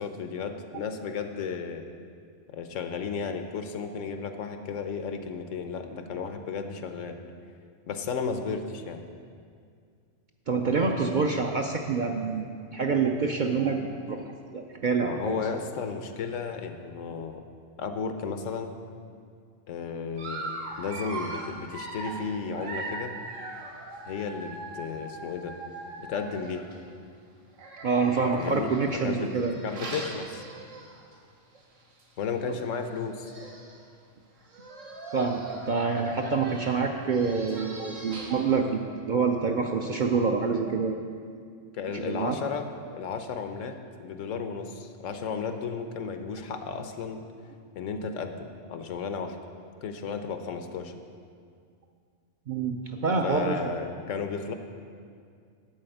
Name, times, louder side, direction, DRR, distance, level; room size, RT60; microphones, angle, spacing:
voice 1, 0.0-1.8 2.5-7.2 7.9-9.0 15.0-17.4 17.8-18.8 19.7-20.5 20.8-23.1 24.1-25.5 26.0-26.7 28.4-28.7 29.0-29.3 29.6-30.5 32.2-33.3 41.7-42.7 42.9-47.2 47.8-49.4 49.8-50.9 53.2-54.5, left 5 dB, 80° left, 7 dB, 1.1 m, -34 dB
voice 2, 10.5-14.2 14.5-15.4 27.8-29.6 35.1-41.0 41.9-42.4 52.5-53.6, right 4 dB, 55° right, 2 dB, 0.5 m, -27 dB
Dog, 20.2-26.8 27.5-31.1 31.6-31.7 32.0-32.1 33.0-33.1 33.2-33.8 34.4-38.5, right 2 dB, 90° right, 1.6 m, -40 dB
11.0 x 4.2 x 7.8 m, 2.2 s
omnidirectional pair, 1.3 m